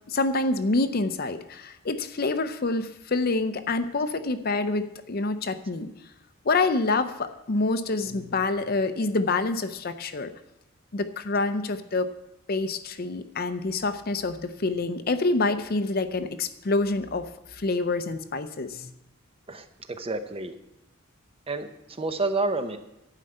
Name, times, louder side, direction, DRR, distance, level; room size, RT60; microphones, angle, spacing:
voice 1, 0.1-5.9 6.4-10.3 10.9-12.1 12.5-18.9, left 3 dB, 45° left, 10 dB, 0.6 m, -27 dB
voice 2, 19.5-20.5 21.5-21.7 22.0-22.8, right 3 dB, 25° right, 8 dB, 0.8 m, -29 dB
11.5 x 5.4 x 8.8 m, 0.90 s
head